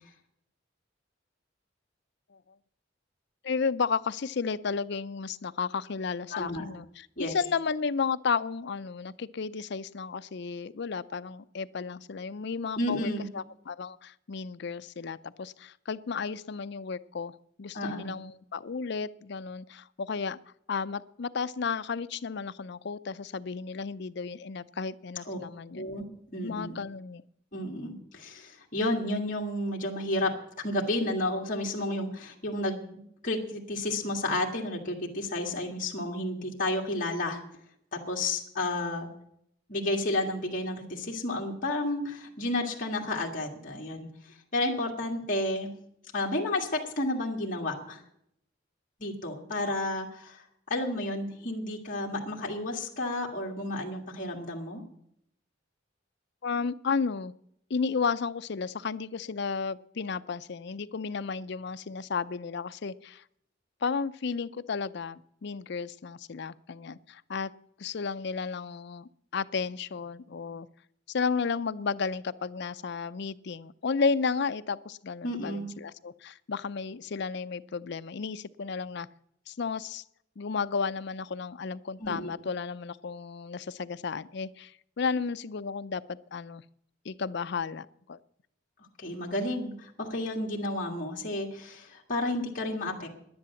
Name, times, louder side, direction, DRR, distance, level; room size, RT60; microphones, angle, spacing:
voice 1, 3.4-20.4 20.7-25.9 26.4-27.2 56.4-57.3 57.7-63.2 63.8-67.5 67.8-70.7 71.1-79.1 79.5-80.0 80.4-86.6 87.0-88.2, left 5 dB, 60° left, 14 dB, 0.5 m, -33 dB
voice 2, 6.3-6.6 7.2-7.4 12.8-13.3 17.7-18.1 25.3-25.4 25.7-26.0 26.3-26.8 27.5-37.4 37.9-39.1 39.7-45.7 46.1-48.0 49.0-54.8 75.2-75.7 82.0-82.3 89.0-93.2, left 1 dB, 45° left, -3 dB, 1.9 m, -31 dB
10.5 x 10.5 x 7.1 m, 0.72 s
head